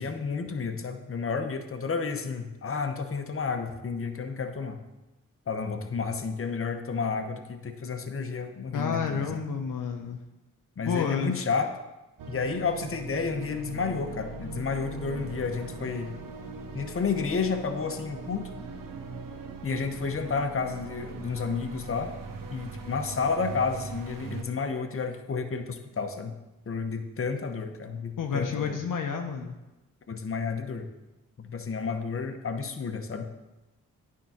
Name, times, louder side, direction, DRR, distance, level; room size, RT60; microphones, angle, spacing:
voice 1, 0.0-4.8 5.5-9.3 10.8-11.7 12.3-16.1 16.7-18.5 19.6-22.1 22.5-26.4 26.7-28.8 30.1-30.9 31.4-33.3, left 5 dB, 40° left, 5 dB, 1.0 m, -31 dB
voice 2, 8.7-10.2 10.9-11.4 28.2-29.5, left 6 dB, 65° left, 4 dB, 0.8 m, -30 dB
sound 1, 12.2-24.4, right 4 dB, 70° right, 1.0 m, -40 dB
9.2 x 3.8 x 5.8 m, 1.0 s
supercardioid pair, 50°, 34 cm